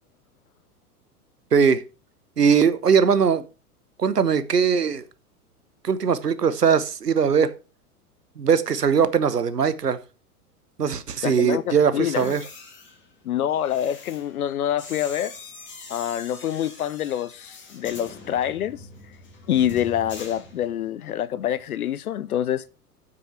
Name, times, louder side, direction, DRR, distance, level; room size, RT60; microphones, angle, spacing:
voice 1, 1.5-1.8 2.4-3.4 4.0-5.0 5.8-7.5 8.4-10.0 10.8-12.4, right 6 dB, 85° right, 0.9 m, -20 dB
voice 2, 11.2-12.3 13.2-15.3 15.9-18.8 19.5-22.7, left 10 dB, 65° left, 0.7 m, -26 dB
sound 1, 12.0-21.0 21.3-21.6, left 3 dB, 25° left, 2.8 m, -43 dB
7.9 x 6.2 x 5.9 m
figure-of-eight pair, 95°, 46 cm